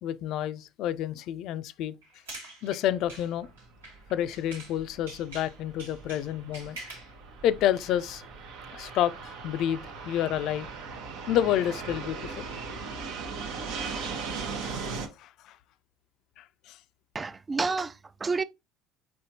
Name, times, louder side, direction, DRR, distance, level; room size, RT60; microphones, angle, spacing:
voice 1, 0.0-1.9 2.6-3.5 4.1-6.8 7.4-8.2 8.7-10.7 11.3-12.5 14.0-14.1 15.2-15.5 16.4-16.8, left 11 dB, 60° left, 0.3 m, -29 dB
sound 1, 2.0-4.8 5.1-7.1, right 2 dB, 90° right, 1.4 m, -45 dB
Fixed-wing aircraft airplane, 2.9-15.1, right 4 dB, 70° right, 0.8 m, -39 dB
voice 2, 17.1-18.4, right 4 dB, 25° right, 0.3 m, -30 dB
4.7 x 4.2 x 2.7 m
hypercardioid pair, 65°, 0 cm